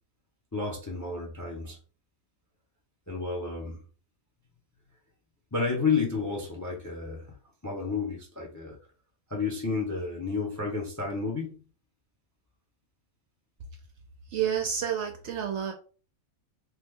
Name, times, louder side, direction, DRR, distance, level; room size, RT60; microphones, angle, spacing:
voice 1, 0.5-1.8 3.1-3.8 5.5-7.3 7.6-8.8 9.3-11.6, left 4 dB, 20° left, 0 dB, 0.5 m, -31 dB
voice 2, 14.3-15.7, right 8 dB, 65° right, 4 dB, 0.7 m, -29 dB
3.0 x 2.4 x 3.5 m, 0.38 s
omnidirectional pair, 1.5 m